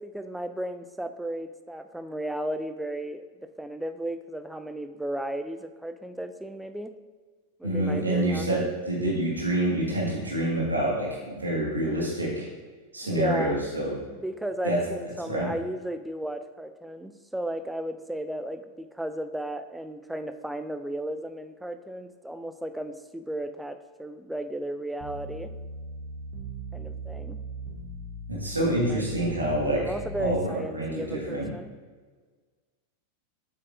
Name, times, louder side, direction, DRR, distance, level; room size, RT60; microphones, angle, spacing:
voice 1, 0.0-6.9 7.6-8.7 13.0-13.6 14.1-25.5 26.7-27.4 28.8-29.0 29.7-31.7, right 1 dB, 5° right, 9 dB, 0.4 m, -35 dB
voice 2, 7.6-12.5 12.9-14.0 14.6-14.8 15.3-15.5 28.3-29.8 30.2-31.5, right 1 dB, 80° right, -4 dB, 1.6 m, -27 dB
sound 1, 25.0-30.3, right 2 dB, 45° right, 0.9 m, -39 dB
7.4 x 6.4 x 2.5 m, 1.5 s
figure-of-eight pair, 90°, 0 cm